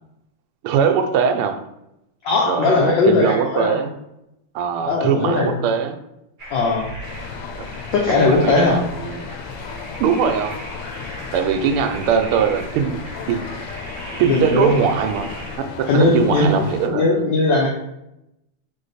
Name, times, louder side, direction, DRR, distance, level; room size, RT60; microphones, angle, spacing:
voice 1, 0.6-1.6 2.4-3.9 4.5-6.0 8.1-9.3 10.0-10.6 11.3-13.0 13.3-13.4 14.2-15.3 15.8-17.2, right 7 dB, 80° right, 7 dB, 1.5 m, -21 dB
voice 2, 2.2-3.8 4.8-5.6 6.5-6.9 7.9-8.8 14.3-14.9 15.9-16.5 16.9-17.7, left 3 dB, 65° left, -3 dB, 1.3 m, -18 dB
sound 1, 6.4-15.6, right 1 dB, 50° right, 0.6 m, -37 dB
sound 2, 7.0-16.9, left 6 dB, 85° left, 1.5 m, -35 dB
3.7 x 3.5 x 4.0 m, 0.84 s
omnidirectional pair, 2.4 m